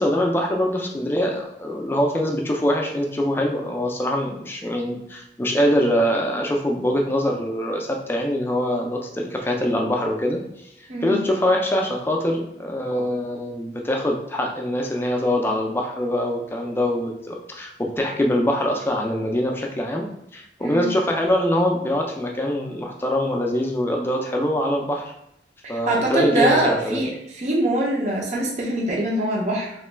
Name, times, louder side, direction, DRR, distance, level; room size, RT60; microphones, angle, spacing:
voice 1, 0.0-20.1 20.3-25.1 25.7-27.0, left 1 dB, 15° left, 1 dB, 0.3 m, -23 dB
voice 2, 20.6-20.9 25.6-27.1 27.4-29.7, right 1 dB, 40° right, -2 dB, 0.6 m, -23 dB
3.0 x 2.2 x 3.2 m, 0.78 s
head